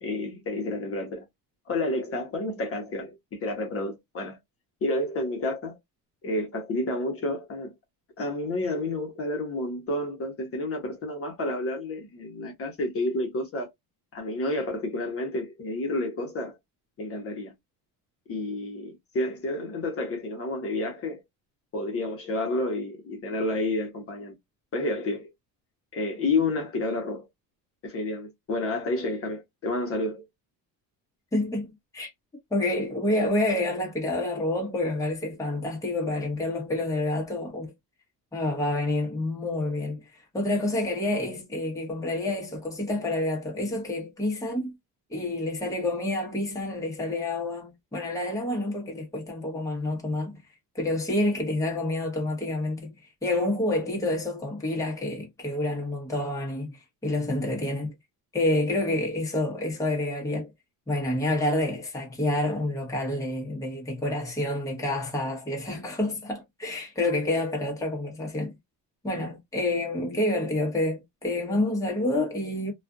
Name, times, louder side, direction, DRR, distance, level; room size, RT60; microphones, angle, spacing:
voice 1, 0.0-1.2 1.7-4.4 4.8-5.8 6.2-7.7 8.2-13.7 14.1-16.6 17.0-17.5 18.3-21.2 21.7-24.3 24.7-25.3 25.9-27.3 27.8-30.2, left 2 dB, 35° left, 0.9 m, -30 dB
voice 2, 31.3-32.1 32.5-37.7 38.3-44.7 45.1-50.4 50.7-52.9 53.2-57.9 58.3-60.5 60.9-68.5 69.0-72.7, left 1 dB, 10° left, 0.9 m, -28 dB
2.4 x 2.4 x 2.3 m
cardioid pair, 155°, 38 cm